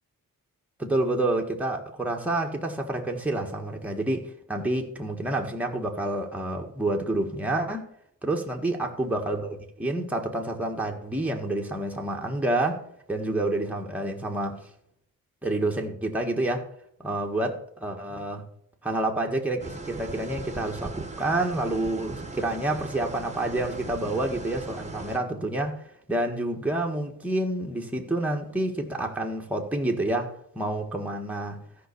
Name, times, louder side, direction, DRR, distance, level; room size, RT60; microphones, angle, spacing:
voice 1, 0.8-7.8 8.2-12.8 13.1-14.6 15.4-16.6 17.0-18.4 18.8-25.8 26.1-30.3 30.5-31.6, right 2 dB, 5° right, 1 dB, 1.6 m, -28 dB
sound 1, 19.6-25.2, right 3 dB, 20° right, 1.4 m, -39 dB
14.0 x 5.5 x 7.0 m, 0.69 s
wide cardioid pair, 135°, 34 cm